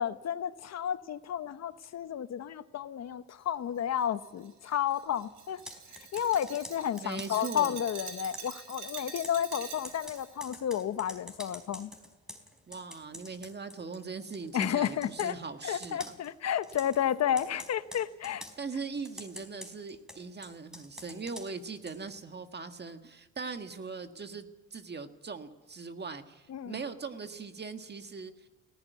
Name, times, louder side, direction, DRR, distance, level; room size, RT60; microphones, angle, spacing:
voice 1, 0.0-5.6 6.1-11.9 14.5-15.4 15.6-18.5 26.5-26.8, left 10 dB, 60° left, 13 dB, 0.9 m, -32 dB
Glass, 4.0-10.3, right 6 dB, 70° right, 5.3 m, -45 dB
Computer keyboard, 5.5-7.5 8.3-14.0 14.3-15.3 15.8-16.3 16.6-17.0 17.4-18.6 19.0-22.2, equal, ahead, 4.2 m, -47 dB
voice 2, 7.0-7.8 12.7-16.2 18.6-28.5, right 4 dB, 35° right, 7 dB, 1.7 m, -40 dB
18.5 x 15.5 x 9.3 m, 1.2 s
cardioid pair, 90°, 30 cm